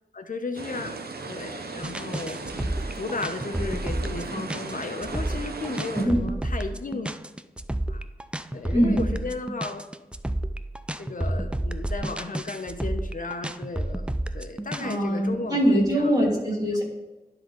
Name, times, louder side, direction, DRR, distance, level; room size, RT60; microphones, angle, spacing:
voice 1, 0.1-1.0 1.3-7.1 7.9-8.0 8.5-9.8 11.0-14.0 14.3-16.1, left 3 dB, 60° left, 6 dB, 0.9 m, -34 dB
sound 1, 0.5-6.1, right 3 dB, 85° right, 0.7 m, -37 dB
sound 2, 1.8-14.9, right 1 dB, 5° right, 0.3 m, -30 dB
voice 2, 8.7-9.1 14.8-16.8, equal, 25° right, -4 dB, 2.9 m, -22 dB
11.5 x 3.9 x 4.5 m, 1.1 s
wide cardioid pair, 85°, 16 cm